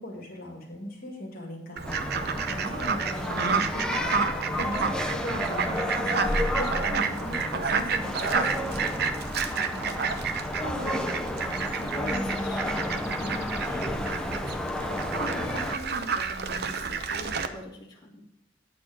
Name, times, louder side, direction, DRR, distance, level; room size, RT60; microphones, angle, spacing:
voice 1, 0.0-8.7, equal, 50° left, -1 dB, 1.9 m, -39 dB
sound 1, 1.8-15.8, left 1 dB, 5° left, 0.6 m, -32 dB
Fowl, 1.8-17.5, right 5 dB, 55° right, 0.7 m, -30 dB
voice 2, 2.6-3.0 6.9-7.1 9.5-10.2 10.6-14.7 15.2-18.2, left 1 dB, 20° left, -5 dB, 1.9 m, -41 dB
8.8 x 4.4 x 6.2 m, 0.86 s
head